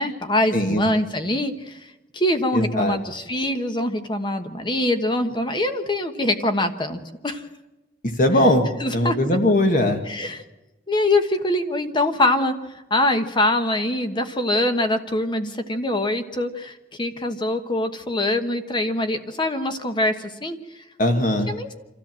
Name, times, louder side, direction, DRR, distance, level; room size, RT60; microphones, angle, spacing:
voice 1, 0.0-1.9 2.1-7.4 8.8-9.4 10.0-10.4 10.9-20.8 21.5-21.7, left 1 dB, 25° left, 7 dB, 1.2 m, -24 dB
voice 2, 0.5-0.8 2.5-3.0 8.2-8.6 8.9-10.0 21.0-21.5, left 1 dB, 50° left, 5 dB, 1.7 m, -19 dB
26.5 x 13.5 x 7.6 m, 1.1 s
head